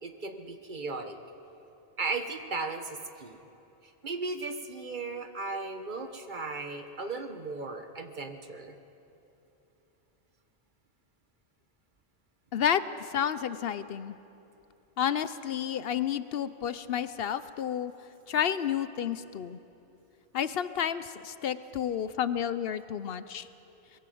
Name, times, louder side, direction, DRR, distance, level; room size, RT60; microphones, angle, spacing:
voice 1, 0.0-1.2 2.0-3.4 4.0-8.7, right 3 dB, 50° right, 7 dB, 1.3 m, -36 dB
voice 2, 12.5-14.2 15.0-17.9 18.3-19.6 20.3-23.5, left 9 dB, 70° left, 14 dB, 0.8 m, -31 dB
21.5 x 16.5 x 7.8 m, 3.0 s
omnidirectional pair, 1.0 m